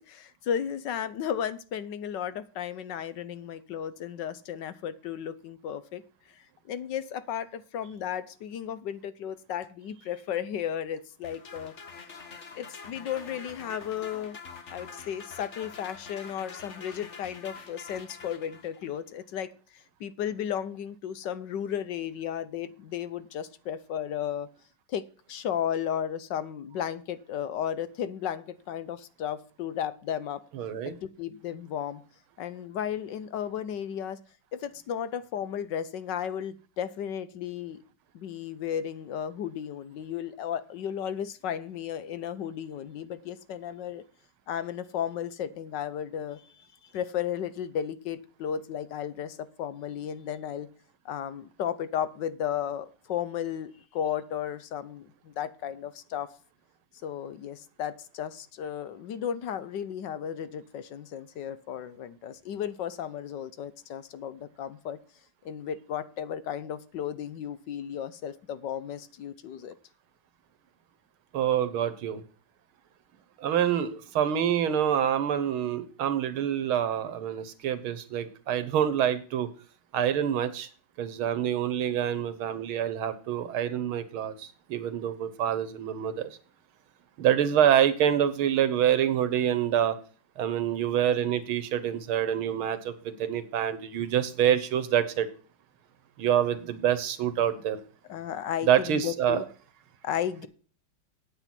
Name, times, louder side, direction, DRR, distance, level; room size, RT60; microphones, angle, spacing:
voice 1, 0.0-6.0 6.3-11.7 12.0-12.1 12.6-14.4 14.7-24.5 24.9-30.4 30.8-32.0 32.4-34.2 34.5-37.8 38.1-44.0 44.5-50.7 51.0-56.3 57.0-65.0 65.4-69.7 98.1-99.4 100.0-100.5, left 9 dB, 65° left, 14 dB, 1.3 m, -34 dB
sound 1, 11.2-19.0, left 5 dB, 40° left, 1.4 m, -46 dB
voice 2, 30.6-31.0 71.3-72.2 73.4-79.5 79.9-80.7 81.0-86.3 87.2-90.0 90.4-95.3 96.2-97.8 98.7-99.4, right 9 dB, 90° right, 13 dB, 2.0 m, -26 dB
9.0 x 8.3 x 5.9 m, 0.40 s
omnidirectional pair, 2.2 m